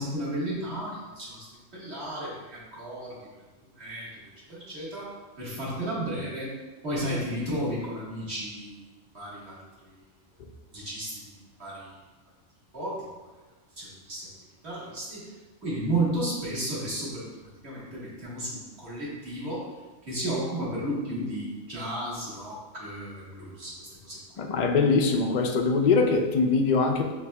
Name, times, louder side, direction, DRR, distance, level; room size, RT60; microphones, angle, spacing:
voice 1, 0.0-1.4 1.7-3.1 3.8-4.1 4.5-5.1 5.4-6.5 6.8-8.8 9.1-9.6 10.7-11.1 11.6-11.9 12.7-13.0 13.8-14.3 14.6-15.2 15.6-17.2 17.6-19.6 20.1-23.7 24.1-24.2, right 1 dB, 55° right, -8 dB, 1.7 m, -33 dB
voice 2, 24.4-27.1, left 4 dB, 75° left, 3 dB, 0.4 m, -23 dB
5.9 x 3.3 x 2.2 m, 1.2 s
omnidirectional pair, 1.3 m